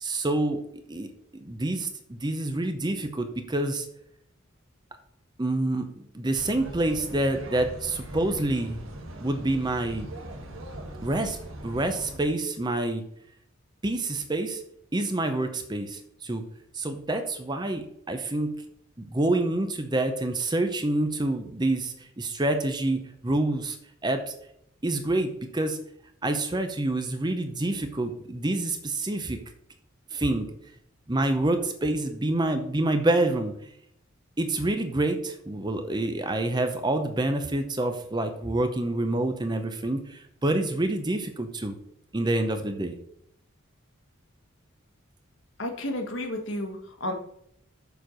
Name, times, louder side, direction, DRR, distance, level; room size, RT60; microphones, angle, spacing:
voice 1, 0.0-0.6 0.9-1.1 1.3-3.9 5.4-8.8 9.2-10.1 11.0-11.4 11.6-13.0 13.8-14.6 14.9-16.4 16.7-18.5 19.0-23.8 24.0-24.3 24.8-25.8 26.2-29.4 30.1-30.5 31.1-33.5 34.4-41.8 42.1-42.9, right 2 dB, 20° right, 7 dB, 0.6 m, -27 dB
sound 1, 6.4-12.2, right 1 dB, 75° right, 1.4 m, -40 dB
voice 2, 45.6-47.1, left 1 dB, 60° left, 3 dB, 1.4 m, -32 dB
6.9 x 4.4 x 6.3 m, 0.73 s
head